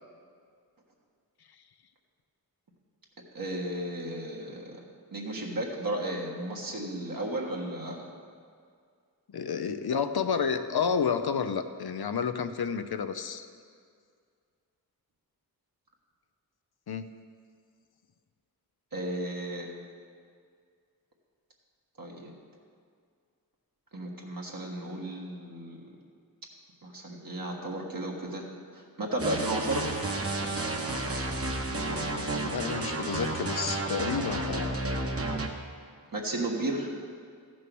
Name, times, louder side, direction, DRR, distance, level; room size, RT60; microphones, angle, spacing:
voice 1, 3.3-4.8 5.1-8.1 18.9-19.7 22.0-22.3 23.9-25.9 26.8-28.5 28.7-29.9 36.1-36.9, right 1 dB, 65° right, -2 dB, 1.6 m, -34 dB
voice 2, 9.3-13.5 16.9-17.0 31.7-34.7, left 6 dB, 80° left, 9 dB, 0.7 m, -30 dB
sound 1, 29.2-35.5, right 2 dB, 40° right, 1.1 m, -31 dB
14.0 x 6.2 x 6.2 m, 2.2 s
wide cardioid pair, 65°, 37 cm